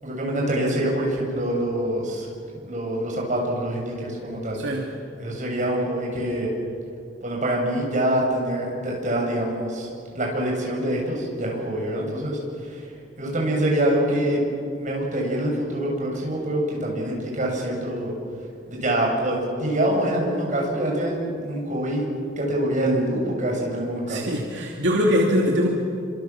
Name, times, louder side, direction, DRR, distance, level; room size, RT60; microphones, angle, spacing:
voice 1, 0.0-2.3 2.5-4.6 5.2-6.5 7.2-12.9 13.2-14.4 14.8-18.1 18.7-22.0 22.4-24.3, right 1 dB, 45° right, -1 dB, 7.6 m, -25 dB
voice 2, 4.5-4.9 24.1-25.7, equal, 80° right, -1 dB, 2.9 m, -22 dB
28.0 x 26.0 x 7.4 m, 2.4 s
head